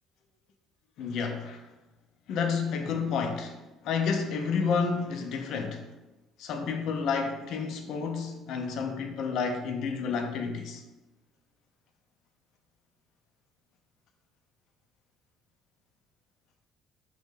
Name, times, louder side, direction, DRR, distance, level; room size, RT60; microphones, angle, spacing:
voice 1, 1.0-1.6 2.3-3.6 3.8-5.8 6.4-10.8, left 5 dB, 65° left, 0.3 m, -30 dB
2.6 x 2.1 x 3.4 m
supercardioid pair, 85°, 0 cm